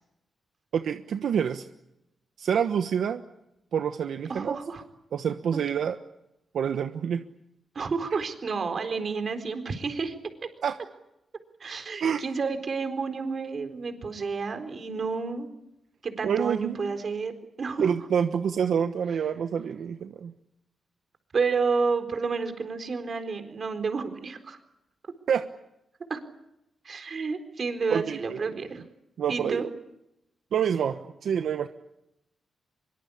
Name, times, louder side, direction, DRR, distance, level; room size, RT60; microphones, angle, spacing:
voice 1, 0.7-1.6 2.4-3.2 3.7-4.6 5.1-6.0 6.5-7.2 10.6-10.8 12.0-12.2 16.2-17.0 17.8-20.3 25.3-25.4 27.9-28.4 29.2-29.7 30.5-31.7, right 7 dB, 75° right, 8 dB, 1.2 m, -27 dB
voice 2, 4.3-4.8 5.5-5.6 7.7-10.1 11.6-15.5 16.0-17.9 21.3-24.6 26.1-26.2 26.8-28.8 29.3-29.7, right 4 dB, 45° right, 8 dB, 4.1 m, -30 dB
25.0 x 23.5 x 8.5 m, 0.86 s
wide cardioid pair, 125°, 0 cm